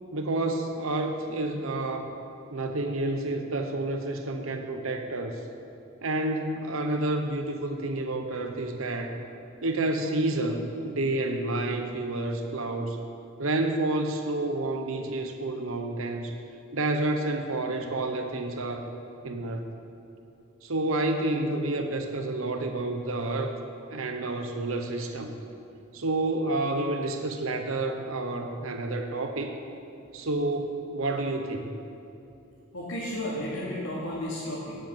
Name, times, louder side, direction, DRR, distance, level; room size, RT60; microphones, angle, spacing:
voice 1, 0.1-2.1 2.5-5.4 6.0-9.2 9.6-13.0 13.4-16.3 16.7-18.9 19.2-19.7 20.6-23.5 23.9-25.4 25.9-29.6 30.1-31.7, right 2 dB, 80° right, 5 dB, 1.0 m, -29 dB
voice 2, 32.7-34.8, left 1 dB, 75° left, -7 dB, 2.7 m, -33 dB
18.5 x 8.0 x 7.3 m, 2.7 s
head